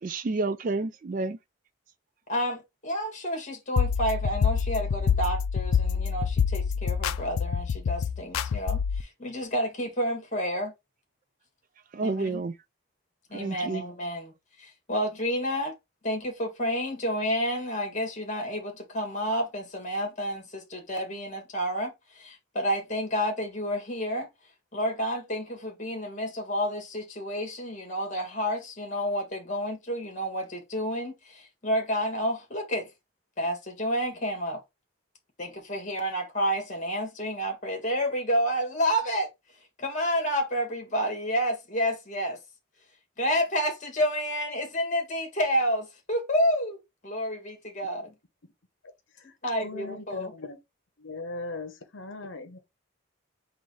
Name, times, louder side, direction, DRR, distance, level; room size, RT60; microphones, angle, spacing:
voice 1, 0.0-1.4 11.9-12.6 13.3-13.8, right 3 dB, 40° right, 0.3 m, -29 dB
voice 2, 2.3-10.7 12.0-12.4 13.3-14.3 14.6-15.7 16.0-24.3 24.7-32.9 33.4-34.6 35.4-39.3 39.8-42.4 43.2-48.1 49.4-50.3, equal, 35° left, 1.7 m, -30 dB
sound 1, 3.8-9.0, left 6 dB, 85° left, 0.4 m, -26 dB
voice 3, 49.1-50.6 51.0-52.6, left 3 dB, 65° left, 0.9 m, -39 dB
3.9 x 2.7 x 4.6 m
head